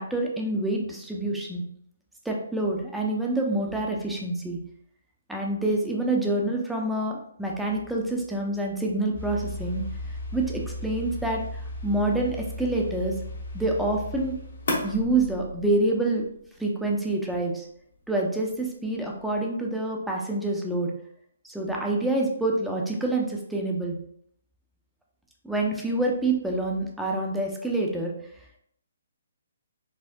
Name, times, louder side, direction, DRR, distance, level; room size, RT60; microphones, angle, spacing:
voice 1, 0.0-1.6 2.2-4.6 5.3-9.8 10.3-13.2 13.5-14.3 14.8-16.2 16.6-17.7 18.1-20.9 21.5-24.0 25.4-28.1, right 2 dB, 5° right, -1 dB, 0.5 m, -27 dB
sound 1, 9.1-16.1, left 1 dB, 65° left, 1.1 m, -35 dB
4.3 x 2.1 x 2.6 m, 0.69 s
figure-of-eight pair, 140°, 0 cm